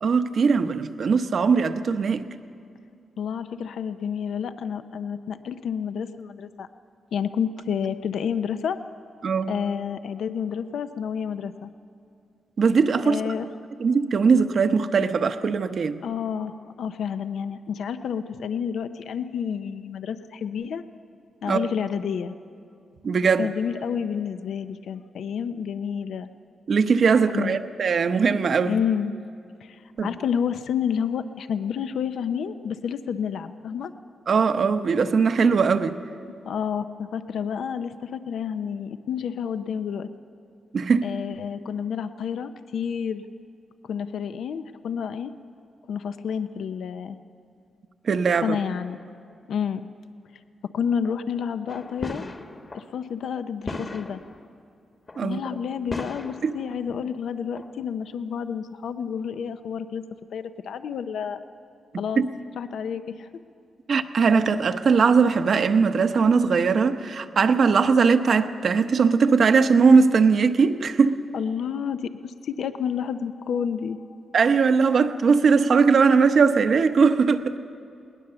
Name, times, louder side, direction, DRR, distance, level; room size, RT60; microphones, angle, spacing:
voice 1, 0.0-2.3 9.2-9.5 12.6-13.2 13.8-16.0 21.5-21.7 23.0-23.5 26.7-28.8 30.0-30.1 34.3-36.0 40.7-41.1 48.0-48.6 55.2-55.4 56.4-56.5 62.2-62.3 63.9-71.2 74.3-77.6, right 5 dB, 55° right, 0.9 m, -20 dB
voice 2, 3.2-6.7 7.1-8.8 9.5-11.7 13.0-13.5 16.0-20.8 21.4-22.3 23.4-26.3 27.3-27.6 28.7-29.1 29.6-33.9 36.4-40.1 41.0-43.2 43.8-45.3 45.9-47.2 48.4-49.0 49.5-49.9 50.7-52.2 52.7-54.2 55.2-60.0 60.3-61.4 62.0-62.2 62.6-63.3 71.3-74.0, left 7 dB, 80° left, 0.6 m, -29 dB
sound 1, 51.7-53.0 53.3-53.4 53.6-54.5 55.1-55.4 55.9-57.0 57.6-58.1, left 2 dB, 35° left, 1.3 m, -36 dB
20.0 x 19.0 x 6.9 m
cardioid pair, 105°, 0 cm